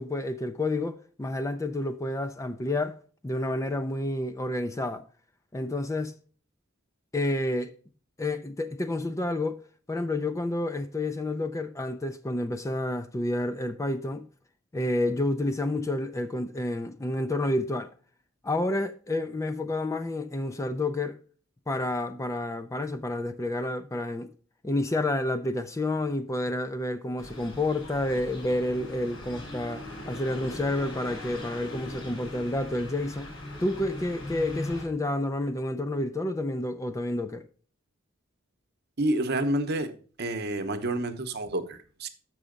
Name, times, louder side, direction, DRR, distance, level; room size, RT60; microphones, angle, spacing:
voice 1, 0.0-2.9 3.2-5.0 5.5-6.1 7.1-7.7 8.2-9.6 9.9-14.3 14.7-17.9 18.4-21.2 21.7-24.3 24.6-33.3 33.6-37.5, left 1 dB, 15° left, 0.4 m, -29 dB
sound 1, 27.2-34.8, left 1 dB, 75° left, 4.0 m, -40 dB
voice 2, 39.0-39.9 40.2-42.1, right 1 dB, 55° right, 0.9 m, -29 dB
6.8 x 6.2 x 5.0 m
head